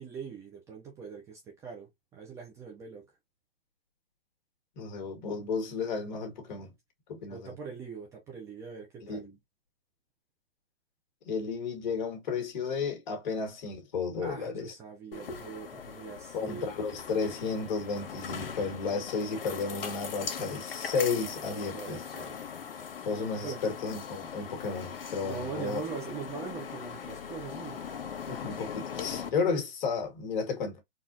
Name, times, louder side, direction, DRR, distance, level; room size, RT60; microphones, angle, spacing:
voice 1, 0.0-3.0 7.3-9.2 14.2-16.7 21.4-22.4 23.4-23.6 25.2-27.8, right 5 dB, 10° right, 0.6 m, -42 dB
voice 2, 4.8-6.7 7.1-7.5 9.0-9.3 11.2-14.7 16.3-22.0 23.0-25.8 28.3-30.8, left 4 dB, 50° left, 1.9 m, -33 dB
sound 1, 15.1-29.3, left 7 dB, 70° left, 1.5 m, -40 dB
4.2 x 2.5 x 2.6 m
hypercardioid pair, 150°, 29 cm